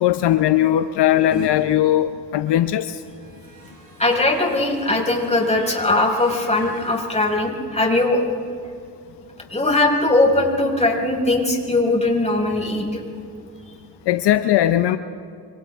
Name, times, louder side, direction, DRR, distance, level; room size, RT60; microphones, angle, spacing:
voice 1, 0.0-3.0 14.1-15.0, left 12 dB, 70° left, 11 dB, 0.8 m, -18 dB
sound 1, 1.3-1.5 2.9-7.3, right 2 dB, 50° right, 7.0 m, -42 dB
voice 2, 4.0-8.2 9.5-13.0, left 2 dB, 15° left, 0 dB, 5.5 m, -20 dB
29.5 x 26.0 x 3.6 m, 2.4 s
cardioid pair, 70°, 42 cm